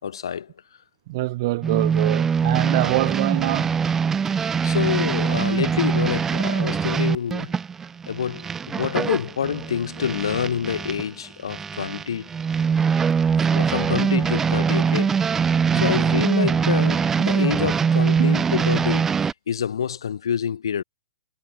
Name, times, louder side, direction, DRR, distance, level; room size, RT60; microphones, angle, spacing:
voice 1, 0.0-0.5 4.3-7.5 8.1-12.3 13.4-20.8, left 8 dB, 80° left, 2.9 m, -27 dB
voice 2, 1.1-3.7 15.7-16.1 18.2-18.3, right 19 dB, 50° right, 2.0 m, -25 dB
sound 1, 1.6-11.1 11.5-19.3, right 6 dB, 15° right, 0.4 m, -22 dB
hypercardioid pair, 135°, 2 cm